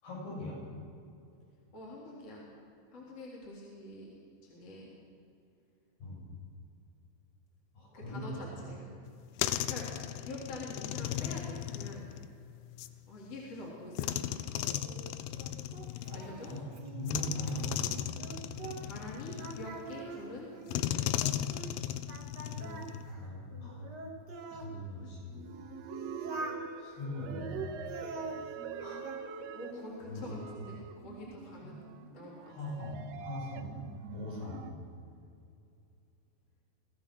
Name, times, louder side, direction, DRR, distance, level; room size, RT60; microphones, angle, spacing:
voice 1, 0.0-0.6 6.0-6.3 7.7-8.5 16.2-18.4 22.4-23.9 24.5-25.3 26.8-27.8 28.8-29.1 29.7-29.8 30.1-30.3 31.6-31.7 32.5-33.8 34.1-34.8, left 1 dB, 60° left, -5 dB, 9.1 m, -41 dB
voice 2, 1.7-2.5 2.9-4.1 4.4-5.0 7.9-8.9 9.5-12.1 13.1-14.6 16.1-16.5 18.8-21.1 29.5-31.8 32.1-32.3, left 1 dB, 35° left, -4 dB, 4.3 m, -45 dB
sound 1, 9.1-12.9 14.0-16.6 17.1-20.0 20.7-23.1, left 12 dB, 90° left, 2.2 m, -36 dB
Singing, 14.6-19.1 19.4-21.7 22.1-24.7 25.3-26.6 27.2-29.2 29.6-30.2, right 3 dB, 65° right, 1.0 m, -45 dB
sound 2, 25.3-34.7, right 7 dB, 85° right, 3.4 m, -45 dB
24.5 x 16.5 x 6.4 m, 2.5 s
omnidirectional pair, 5.2 m